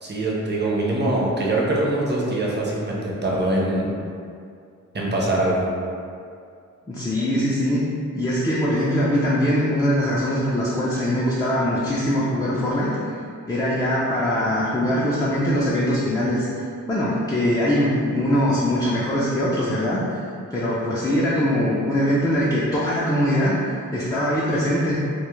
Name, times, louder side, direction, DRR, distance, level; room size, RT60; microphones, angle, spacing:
voice 1, 0.0-3.9 4.9-5.7, right 1 dB, 35° right, -3 dB, 0.5 m, -23 dB
voice 2, 6.9-7.8 8.1-13.2 13.5-16.5 16.9-20.2 20.5-23.6 23.9-25.0, equal, 15° left, -8 dB, 0.3 m, -22 dB
2.2 x 2.0 x 3.0 m, 2.3 s
wide cardioid pair, 60°, 31 cm